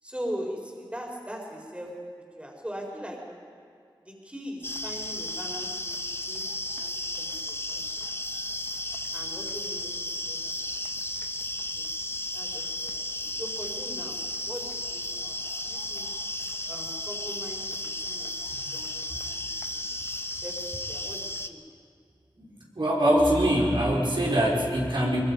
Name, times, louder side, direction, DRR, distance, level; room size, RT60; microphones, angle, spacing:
voice 1, 0.0-3.3 4.0-6.5 6.8-8.1 9.1-10.5 11.7-11.9 12.3-16.1 16.7-19.8 20.4-21.6, equal, 15° right, 0 dB, 4.5 m, -41 dB
sound 1, 4.6-21.5, left 1 dB, 25° left, 1.1 m, -34 dB
voice 2, 22.7-25.2, equal, 65° right, -4 dB, 4.7 m, -23 dB
22.5 x 22.5 x 5.4 m, 2.2 s
cardioid pair, 40°, 9 cm